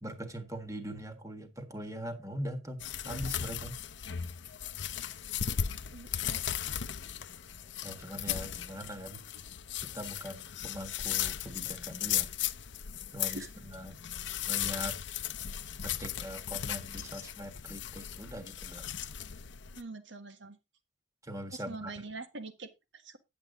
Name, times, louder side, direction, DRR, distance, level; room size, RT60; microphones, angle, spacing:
voice 1, 0.0-3.8 7.8-9.2 9.8-12.3 13.1-14.0 14.5-15.0 15.8-18.9 21.2-21.9, equal, 15° right, 1.6 m, -41 dB
sound 1, 2.8-19.8, left 10 dB, 75° left, 0.6 m, -37 dB
voice 2, 5.9-6.4 13.2-13.5 19.7-20.6 21.5-23.2, right 3 dB, 75° right, 1.6 m, -44 dB
10.0 x 8.3 x 3.8 m
head